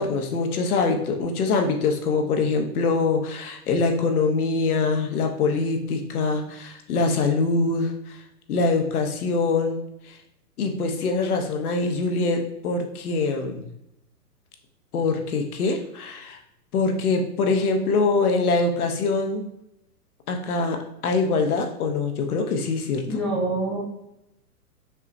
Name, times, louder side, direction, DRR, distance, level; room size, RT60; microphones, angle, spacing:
voice 1, 0.0-8.2 8.5-9.8 10.1-10.2 10.6-13.7 14.9-16.4 16.7-19.5 20.3-20.8 21.0-23.0, left 3 dB, 70° left, 4 dB, 0.8 m, -24 dB
voice 2, 23.0-23.8, right 2 dB, ahead, -8 dB, 0.4 m, -26 dB
5.5 x 2.0 x 2.6 m, 0.83 s
hypercardioid pair, 130°, 47 cm